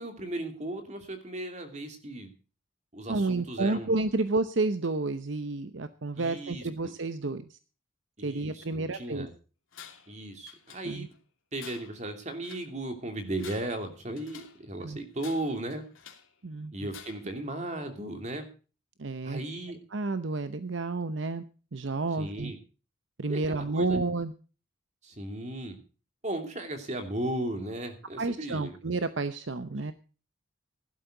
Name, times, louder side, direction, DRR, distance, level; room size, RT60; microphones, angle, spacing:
voice 1, 0.0-2.3 2.9-3.9 6.2-6.9 8.2-9.3 10.1-11.1 11.5-15.8 16.7-18.5 19.2-19.8 22.2-22.6 23.3-24.0 25.0-25.8 26.2-28.8, right 1 dB, 35° right, 6 dB, 2.9 m, -36 dB
voice 2, 3.1-7.6 8.2-9.3 10.8-11.1 14.8-15.0 16.4-16.9 19.0-19.4 19.9-21.4 21.7-22.5 23.2-24.3 28.2-29.9, right 3 dB, 65° right, 11 dB, 0.8 m, -30 dB
Tools, 9.7-10.2 10.5-11.2 11.6-12.7 13.2-14.6 15.2-16.3 16.9-17.4, left 8 dB, 85° left, 2.9 m, -50 dB
16.0 x 12.0 x 3.9 m, 0.36 s
head